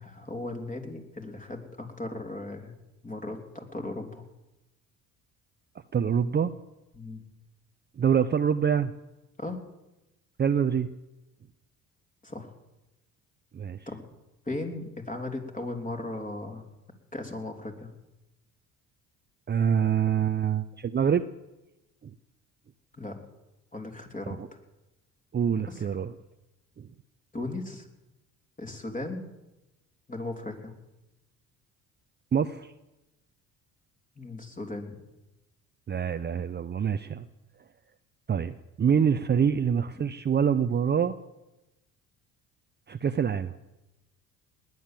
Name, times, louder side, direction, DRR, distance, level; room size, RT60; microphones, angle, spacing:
voice 1, 0.0-2.7 3.0-4.2 6.9-7.2 9.4-9.6 12.2-12.5 13.9-14.0 14.4-16.7 17.1-17.9 23.0-23.2 23.7-24.4 25.5-25.9 27.3-27.9 28.6-29.3 30.1-30.7 34.1-35.0, left 2 dB, 20° left, 4 dB, 3.2 m, -37 dB
voice 2, 5.9-6.5 8.0-8.9 10.4-10.9 13.5-13.9 19.5-21.2 22.0-22.1 24.4-24.5 25.3-26.1 26.8-26.9 32.3-32.7 35.9-37.3 38.3-41.2 42.9-43.6, right 7 dB, 30° right, 11 dB, 0.7 m, -25 dB
20.0 x 9.5 x 7.5 m, 0.99 s
supercardioid pair, 70°, 36 cm